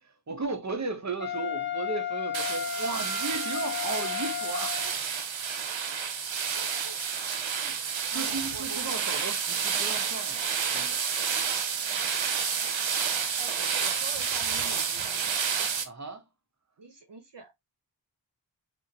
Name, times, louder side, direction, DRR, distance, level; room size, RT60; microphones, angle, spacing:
voice 1, 0.3-5.0 7.5-7.8 8.1-11.0 15.8-16.2, right 3 dB, 40° right, 0.8 m, -35 dB
Wind instrument woodwind instrument, 1.2-5.0, left 8 dB, 25° left, 0.6 m, -33 dB
sound 1, 2.3-15.8, right 6 dB, 85° right, 0.7 m, -30 dB
voice 2, 6.5-7.0 8.1-9.0 9.7-10.0 12.3-12.6 13.4-15.3 16.8-17.5, right 3 dB, 65° right, 1.0 m, -46 dB
3.5 x 2.5 x 2.8 m
wide cardioid pair, 65°, 45 cm